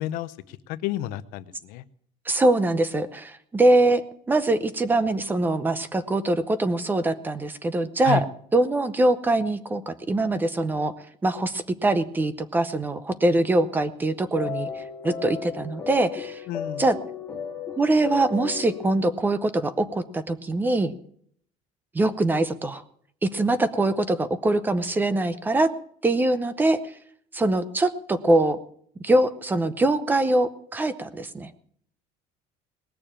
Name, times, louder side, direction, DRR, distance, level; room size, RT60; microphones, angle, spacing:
voice 1, 0.0-1.8 8.0-8.2 16.5-16.8, left 12 dB, 70° left, 14 dB, 0.7 m, -30 dB
voice 2, 2.3-4.0 4.3-8.2 8.5-10.9 11.2-16.4 16.8-16.9 17.8-20.9 21.9-22.8 23.2-25.7 26.0-26.8 27.3-28.6 29.0-31.5, right 2 dB, 10° right, 13 dB, 0.7 m, -23 dB
sound 1, 14.3-19.2, left 7 dB, 15° left, 1.8 m, -35 dB
19.5 x 6.9 x 8.8 m, 0.65 s
cardioid pair, 175°, 15 cm